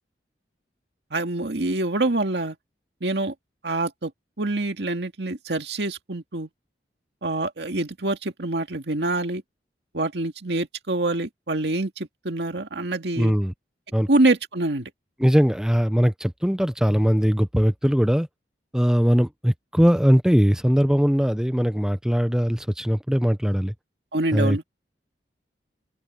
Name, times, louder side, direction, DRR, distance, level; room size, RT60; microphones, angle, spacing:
voice 1, 1.1-2.6 3.0-3.3 3.6-4.1 4.4-6.5 7.2-9.4 9.9-13.3 14.1-14.9 24.1-24.6, right 2 dB, 75° right, 2.1 m, -25 dB
voice 2, 13.2-13.5 13.9-14.1 15.2-18.3 18.7-23.7 24.3-24.6, equal, 5° right, 0.6 m, -20 dB
open air
head